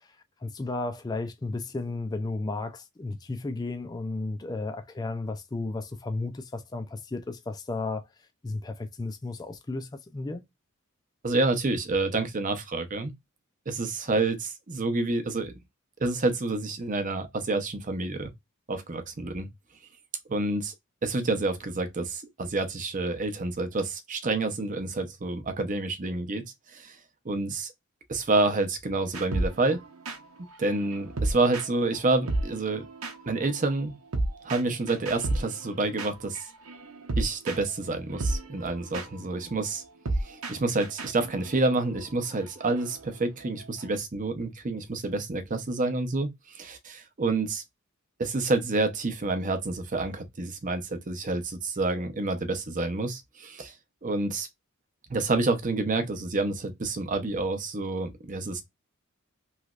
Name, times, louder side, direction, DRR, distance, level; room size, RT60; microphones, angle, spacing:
voice 1, 0.4-8.0 8.4-10.4, left 3 dB, 20° left, 0.3 m, -33 dB
voice 2, 11.2-13.1 13.7-15.5 16.0-18.3 18.7-19.5 20.3-20.7 21.0-26.4 26.7-27.0 27.2-27.7 28.1-29.8 30.6-32.9 33.2-33.9 34.4-36.5 37.2-39.8 40.2-47.6 48.2-53.7 54.0-54.5 55.1-58.6, right 3 dB, 40° right, 0.7 m, -28 dB
sound 1, 29.1-32.0 32.3-43.9, right 2 dB, 75° right, 0.9 m, -34 dB
3.2 x 3.0 x 2.4 m
head